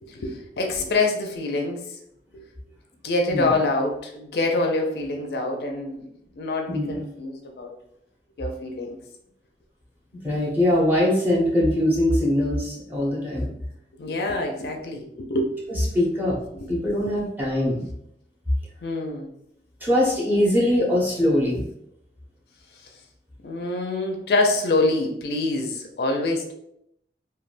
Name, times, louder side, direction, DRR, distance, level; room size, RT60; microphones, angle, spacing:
voice 1, 0.0-2.0 2.3-2.5 3.0-6.1 6.4-7.7 8.4-9.0 14.0-15.5 16.5-16.7 18.8-19.3 23.4-26.5, left 2 dB, 60° left, 3 dB, 0.4 m, -26 dB
voice 2, 6.7-7.0 10.2-13.5 15.9-16.4 16.7-17.9 19.8-21.6, left 1 dB, 10° right, -5 dB, 0.8 m, -22 dB
3.3 x 2.2 x 2.5 m, 0.76 s
head